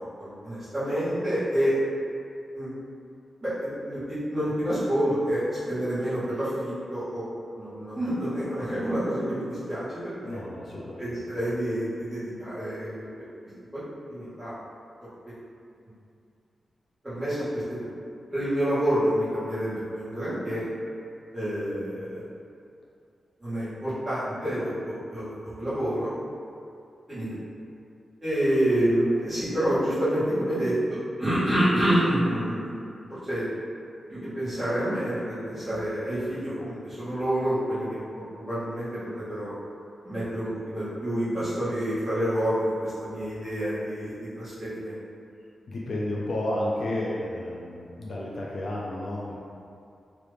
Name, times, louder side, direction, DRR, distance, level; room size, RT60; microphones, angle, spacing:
voice 1, 0.2-1.7 2.5-2.7 3.4-7.2 7.6-10.4 11.0-13.3 14.1-14.5 17.0-17.8 18.3-20.6 21.3-22.2 23.4-26.1 27.1-27.3 28.2-30.7 31.2-32.8 33.2-33.4 34.1-37.9 38.3-38.9 39.1-39.5 40.0-44.9, equal, 15° right, -14 dB, 1.4 m, -28 dB
voice 2, 10.2-11.5 45.7-49.4, left 1 dB, 55° left, -4 dB, 0.4 m, -32 dB
3.0 x 2.4 x 3.3 m, 2.5 s
wide cardioid pair, 165°, 0 cm